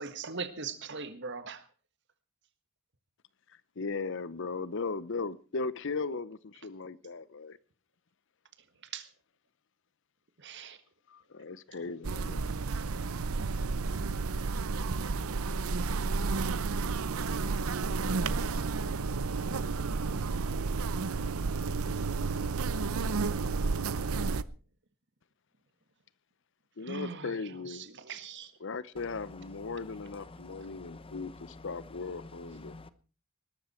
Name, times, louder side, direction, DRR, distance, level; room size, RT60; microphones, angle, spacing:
voice 1, 0.0-1.6 8.9-9.0 10.4-10.8 26.9-27.3 27.7-28.5, right 5 dB, 55° right, 1.8 m, -40 dB
voice 2, 3.8-7.6 11.1-12.5 26.8-27.9 28.6-32.8, left 4 dB, 60° left, 0.7 m, -37 dB
sound 1, 12.0-24.4, right 4 dB, 85° right, 0.7 m, -31 dB
voice 3, 30.4-31.3 32.5-32.9, left 2 dB, 25° left, 0.9 m, -49 dB
20.0 x 13.0 x 4.4 m
head